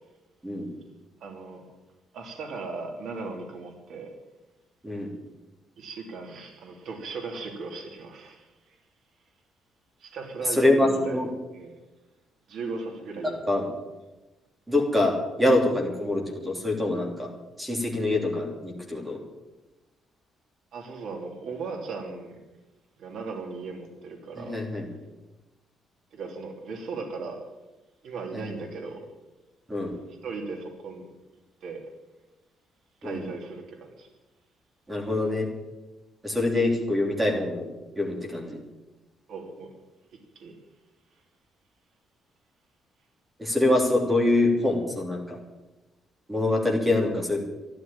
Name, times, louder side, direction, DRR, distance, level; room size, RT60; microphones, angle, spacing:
voice 1, 1.2-1.6 2.1-4.1 5.8-8.5 10.0-11.2 11.5-11.8 12.5-13.4 20.7-22.4 23.0-24.6 26.1-27.4 28.0-29.0 30.2-31.1 31.6-31.8 33.0-34.1 39.3-39.7 40.3-40.5, right 4 dB, 60° right, 1 dB, 3.0 m, -37 dB
voice 2, 10.6-11.3 13.5-13.7 14.7-17.3 17.6-19.2 24.4-24.8 29.7-29.9 33.0-33.2 34.9-35.5 36.2-37.6 37.9-38.6 43.4-45.4 46.3-47.4, left 2 dB, 10° right, 1 dB, 3.1 m, -25 dB
12.5 x 12.0 x 8.8 m, 1.1 s
cardioid pair, 165°, 0 cm